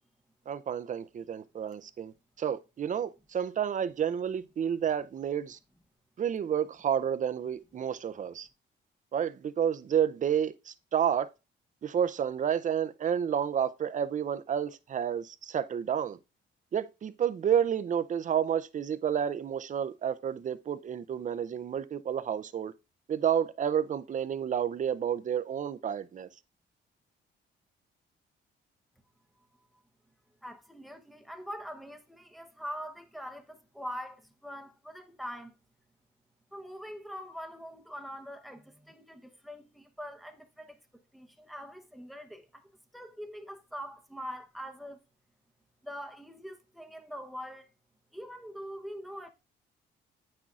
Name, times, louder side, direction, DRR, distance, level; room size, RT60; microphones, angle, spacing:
voice 1, 0.5-5.6 6.2-8.5 9.1-11.3 11.8-16.2 16.7-22.7 23.1-26.3, right 8 dB, 40° right, 0.5 m, -30 dB
voice 2, 30.4-35.6 36.5-45.0 45.8-47.7 48.1-49.3, equal, ahead, 0.9 m, -43 dB
8.6 x 6.1 x 2.4 m
cardioid pair, 90°, 20 cm